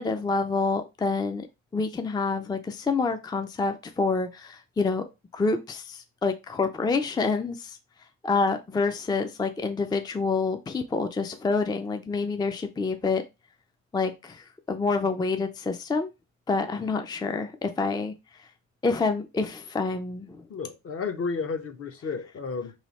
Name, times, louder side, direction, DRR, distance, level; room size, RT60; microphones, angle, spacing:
voice 1, 0.0-1.5 1.7-5.0 5.3-7.8 8.2-13.2 13.9-16.1 16.5-18.1 18.8-20.4, left 4 dB, 15° left, 0.4 m, -27 dB
voice 2, 20.5-22.7, left 5 dB, 50° left, 0.8 m, -32 dB
3.2 x 2.7 x 4.0 m
cardioid pair, 90°, 30 cm